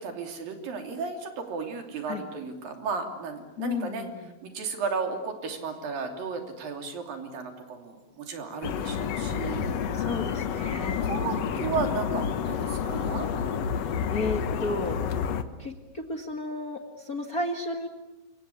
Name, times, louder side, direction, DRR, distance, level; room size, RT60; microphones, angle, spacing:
voice 1, 0.0-4.1 4.4-9.8 11.0-13.3, right 5 dB, 80° right, 5 dB, 4.8 m, -34 dB
voice 2, 3.6-4.3 9.9-11.0 11.2-11.7 13.8-15.0 15.6-17.9, left 2 dB, 35° left, 4 dB, 1.6 m, -33 dB
sound 1, 8.6-15.4, left 7 dB, 60° left, 2.0 m, -29 dB
27.5 x 24.5 x 8.6 m, 1.1 s
omnidirectional pair, 4.0 m